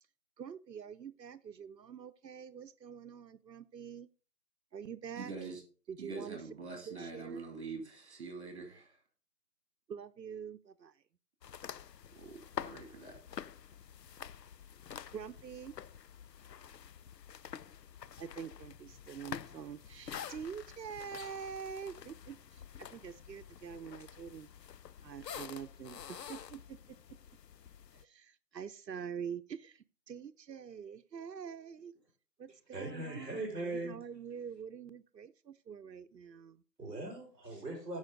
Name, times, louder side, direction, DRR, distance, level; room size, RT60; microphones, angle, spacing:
voice 1, 0.4-4.1 4.7-5.3 5.9-6.4 6.9-7.5 9.9-11.0 15.1-15.8 18.2-24.5 25.0-27.0 27.9-31.9 32.4-36.6, right 7 dB, 85° right, 11 dB, 0.8 m, -45 dB
voice 2, 5.2-5.6 6.0-9.0 12.2-13.2, right 4 dB, 40° right, 4 dB, 2.8 m, -45 dB
sound 1, 11.4-28.0, left 8 dB, 80° left, 0.7 m, -48 dB
voice 3, 32.7-34.0 36.8-38.0, right 2 dB, 5° right, -14 dB, 4.9 m, -40 dB
14.5 x 5.6 x 3.8 m, 0.37 s
hypercardioid pair, 170°, 49 cm